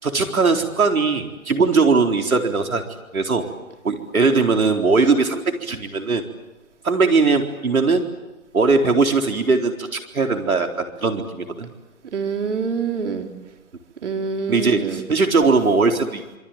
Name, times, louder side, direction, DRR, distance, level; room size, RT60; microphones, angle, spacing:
voice 1, 0.0-2.8 3.1-3.5 3.8-6.2 6.8-8.1 8.5-11.7 14.5-16.4, right 4 dB, 70° right, 4 dB, 4.1 m, -19 dB
voice 2, 12.1-13.3 14.0-15.0, right 5 dB, 55° right, 5 dB, 3.7 m, -26 dB
26.5 x 24.5 x 8.9 m, 1.1 s
figure-of-eight pair, 140°, 43 cm